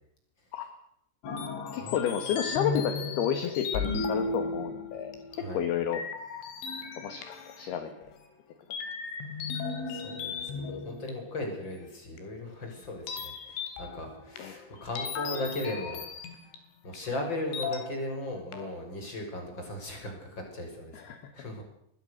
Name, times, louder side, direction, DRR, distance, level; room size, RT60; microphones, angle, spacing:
sound 1, 1.2-5.6 5.9-8.2 8.7-11.7 12.2-12.3 13.1-16.6 16.9-17.1 17.5-18.2 18.5-18.7, left 4 dB, 80° left, 5.3 m, -36 dB
voice 1, 1.7-6.0 7.0-8.1 14.4-14.6 20.9-21.3, left 9 dB, 60° left, 8 dB, 3.3 m, -31 dB
voice 2, 5.3-5.6 9.8-16.0 16.3-16.4 16.8-21.0 21.3-21.6, left 1 dB, 25° left, 3 dB, 6.7 m, -37 dB
26.0 x 20.5 x 6.7 m, 0.73 s
omnidirectional pair, 5.6 m